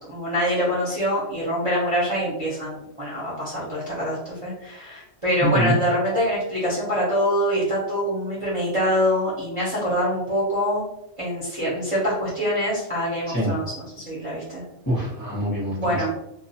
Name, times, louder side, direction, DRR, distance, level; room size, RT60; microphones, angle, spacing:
voice 1, 0.1-10.8 11.2-14.6 15.7-16.1, equal, 35° right, -7 dB, 0.6 m, -25 dB
voice 2, 5.4-5.8 13.3-13.5 14.9-16.1, equal, 20° left, -6 dB, 0.6 m, -24 dB
2.4 x 2.3 x 2.7 m, 0.88 s
omnidirectional pair, 1.5 m